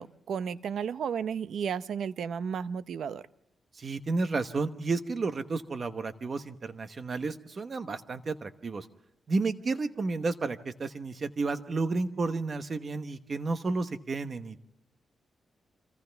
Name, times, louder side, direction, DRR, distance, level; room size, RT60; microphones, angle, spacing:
voice 1, 0.0-3.3, right 7 dB, 75° right, 14 dB, 0.7 m, -33 dB
voice 2, 3.7-8.9 9.3-14.6, right 3 dB, 40° right, 9 dB, 1.1 m, -32 dB
29.0 x 26.0 x 3.5 m, 0.80 s
wide cardioid pair, 130°, 0 cm